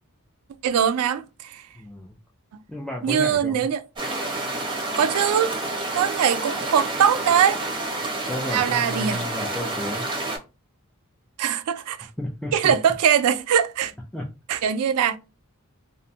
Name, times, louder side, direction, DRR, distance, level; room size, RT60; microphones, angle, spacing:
voice 1, 0.6-1.6 3.0-3.8 5.0-5.5 5.9-7.6 8.5-9.3 11.4-12.1 12.5-13.9 14.5-15.2, right 8 dB, 85° right, 0.3 m, -21 dB
voice 2, 1.7-2.2 2.7-3.7 8.3-10.1 12.2-12.7 14.1-14.3, left 1 dB, 5° left, 0.3 m, -32 dB
sound 1, 4.0-10.4, right 2 dB, 20° right, 0.7 m, -29 dB
2.5 x 2.1 x 2.7 m
head